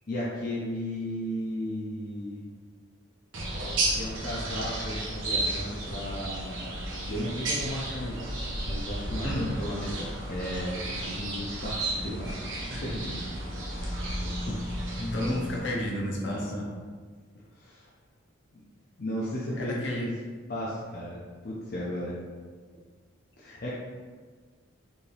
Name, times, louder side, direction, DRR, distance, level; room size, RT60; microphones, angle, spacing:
voice 1, 0.1-2.4 4.0-6.7 7.1-8.3 8.7-13.2 13.7-14.6 16.2-16.7 17.5-17.9 18.5-18.6 19.0-20.1 20.5-22.2 23.4-23.7, equal, 50° left, -6 dB, 0.6 m, -35 dB
sound 1, 3.3-15.6, right 1 dB, 75° right, 0.9 m, -33 dB
voice 2, 15.0-16.4 19.6-20.1 23.5-23.7, left 1 dB, 65° left, -2 dB, 0.9 m, -31 dB
5.2 x 2.7 x 3.3 m, 1.5 s
head